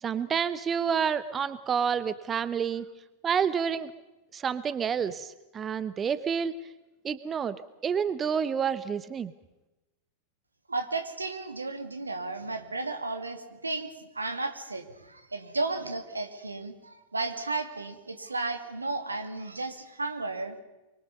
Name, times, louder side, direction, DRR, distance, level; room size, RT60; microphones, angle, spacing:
voice 1, 0.0-2.8 3.2-3.9 4.3-6.5 7.0-7.6 7.8-9.3, right 7 dB, 20° right, 15 dB, 0.9 m, -29 dB
voice 2, 10.7-20.5, right 3 dB, 80° right, 7 dB, 2.4 m, -34 dB
25.5 x 24.5 x 5.4 m, 1.0 s
figure-of-eight pair, 90°, 0 cm